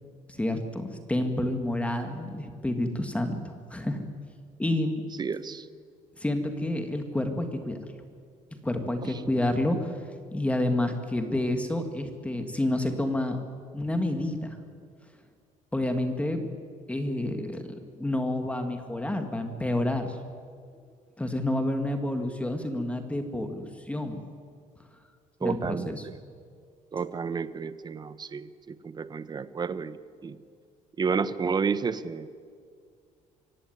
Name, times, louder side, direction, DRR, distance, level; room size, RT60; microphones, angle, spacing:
voice 1, 0.3-4.0 4.6-5.0 6.2-7.8 8.6-9.9 10.3-13.4 13.7-14.6 15.7-16.5 16.9-20.2 21.2-24.2 25.4-26.0, left 1 dB, 10° left, 6 dB, 2.0 m, -29 dB
voice 2, 5.2-5.7 9.0-9.1 25.4-26.1 26.9-30.0 30.2-30.4 31.0-32.3, right 5 dB, 30° right, 14 dB, 1.0 m, -31 dB
24.5 x 16.0 x 9.5 m, 2.1 s
cardioid pair, 130°, 15 cm